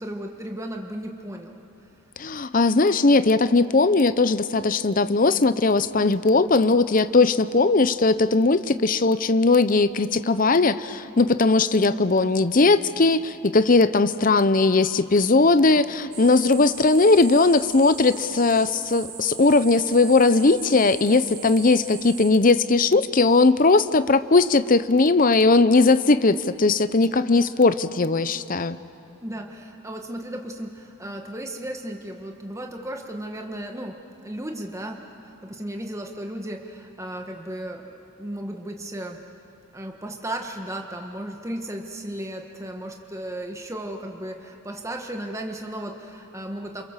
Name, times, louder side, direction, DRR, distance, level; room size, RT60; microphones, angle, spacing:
voice 1, 0.0-1.6 29.2-35.0 35.4-39.2 39.7-46.8, right 1 dB, 15° right, 2 dB, 1.5 m, -35 dB
voice 2, 2.2-28.8, left 3 dB, 40° left, 13 dB, 0.7 m, -19 dB
sound 1, 16.1-22.3, right 8 dB, 90° right, 2.8 m, -40 dB
29.0 x 27.5 x 7.4 m, 2.7 s
head